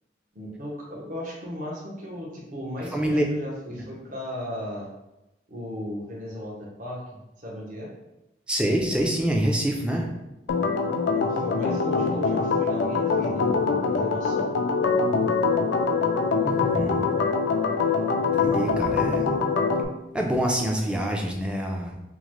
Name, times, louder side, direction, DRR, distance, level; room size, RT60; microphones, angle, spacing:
voice 1, 0.3-4.9 5.5-7.9 11.1-14.6, equal, 50° right, -3 dB, 0.9 m, -36 dB
voice 2, 2.9-3.2 8.5-10.1 16.4-17.1 18.3-19.4 20.1-21.9, equal, 5° right, 0 dB, 0.4 m, -26 dB
Organ, 10.5-19.8, left 4 dB, 85° left, 0.4 m, -24 dB
3.8 x 2.1 x 3.0 m, 0.93 s
head